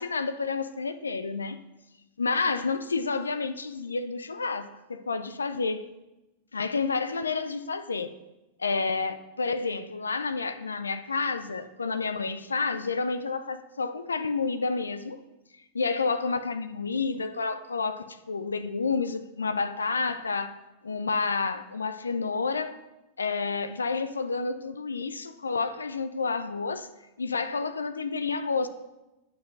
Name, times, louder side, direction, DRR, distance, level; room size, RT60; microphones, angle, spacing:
voice 1, 0.0-1.6 2.2-5.8 6.5-8.2 8.6-15.2 15.7-20.6 20.8-22.8 23.2-26.9 27.2-28.7, left 4 dB, 75° left, 0.5 m, -30 dB
9.2 x 4.7 x 7.5 m
figure-of-eight pair, 90°, 0 cm